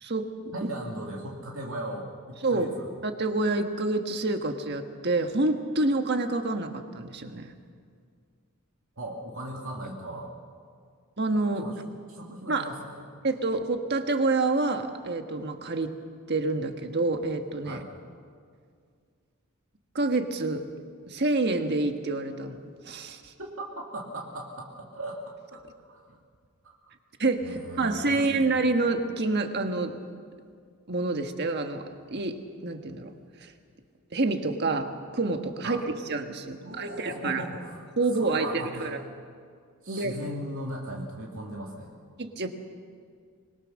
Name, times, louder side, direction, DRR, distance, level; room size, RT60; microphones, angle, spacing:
voice 1, 0.5-2.9 9.0-10.3 11.5-11.8 12.1-13.0 17.6-17.9 23.4-25.2 25.5-25.6 25.9-26.0 26.6-26.7 27.4-28.6 35.6-35.8 36.6-37.8 38.1-38.9 39.8-41.9, right 1 dB, 65° right, -1 dB, 2.3 m, -38 dB
voice 2, 2.4-7.5 11.2-11.6 12.5-12.7 13.2-15.9 16.3-17.8 19.9-20.6 21.1-23.2 27.2-30.0 30.9-32.4 32.6-33.1 33.4-33.5 34.1-35.8 36.1-37.4 38.0-39.0 39.9-40.2 42.2-42.5, right 2 dB, 50° right, 6 dB, 1.5 m, -28 dB
25.0 x 21.0 x 6.5 m, 2.1 s
head